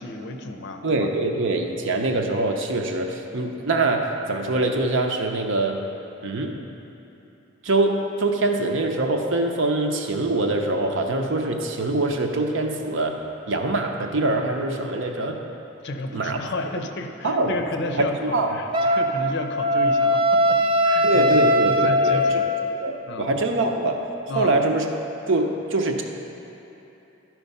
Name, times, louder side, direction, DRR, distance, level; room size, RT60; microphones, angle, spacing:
voice 1, 0.0-1.1 15.8-22.5 23.1-23.3 24.3-24.6, left 2 dB, 55° left, 5 dB, 0.6 m, -32 dB
voice 2, 0.8-5.8 6.2-6.6 7.6-13.2 13.5-15.4 16.1-16.4 17.2-17.6 18.0-18.6 21.0-22.2 22.8-24.0 24.3-24.8 25.3-26.0, right 2 dB, 65° right, 3 dB, 0.8 m, -24 dB
Wind instrument woodwind instrument, 18.7-22.7, equal, 25° right, 0.4 m, -20 dB
12.0 x 4.6 x 5.4 m, 2.9 s
head